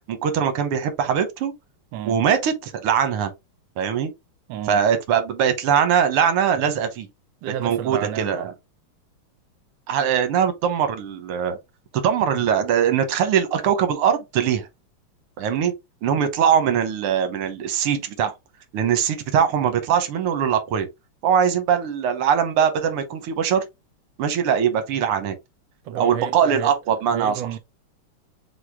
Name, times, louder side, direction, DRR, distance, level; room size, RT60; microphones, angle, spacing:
voice 1, 0.1-1.5 2.1-3.3 3.8-4.1 4.7-7.1 7.6-8.5 9.9-11.6 11.9-14.7 15.4-15.7 16.0-18.4 18.7-20.9 21.2-23.6 24.2-25.4 25.9-27.4, right 8 dB, 90° right, 1.8 m, -21 dB
voice 2, 4.5-4.8 7.4-8.5 25.8-26.7 27.1-27.6, right 11 dB, 75° right, 1.1 m, -31 dB
6.3 x 2.2 x 3.4 m
omnidirectional pair, 2.4 m